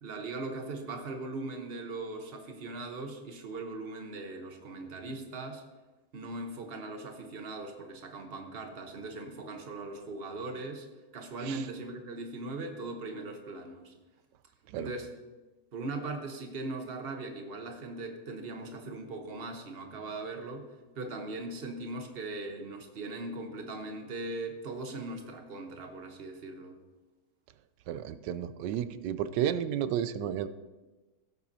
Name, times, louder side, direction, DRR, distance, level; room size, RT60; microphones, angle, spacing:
voice 1, 0.0-5.6 6.1-10.9 11.1-13.9 14.7-15.1 15.7-20.7 20.9-26.8, right 2 dB, 40° right, 4 dB, 1.1 m, -39 dB
voice 2, 27.9-30.5, right 10 dB, 90° right, 13 dB, 1.2 m, -32 dB
16.5 x 8.1 x 2.7 m, 1.2 s
omnidirectional pair, 1.8 m